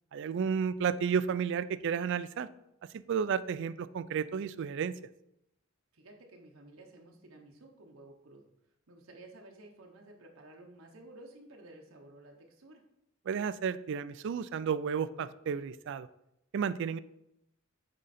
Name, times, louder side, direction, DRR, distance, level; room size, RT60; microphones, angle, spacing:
voice 1, 0.1-2.5 2.9-5.0 13.3-16.1 16.5-17.0, right 7 dB, 60° right, 16 dB, 0.3 m, -32 dB
voice 2, 5.9-8.5 8.9-12.8, right 2 dB, 90° right, 1 dB, 1.0 m, -53 dB
8.8 x 3.8 x 4.2 m, 0.83 s
head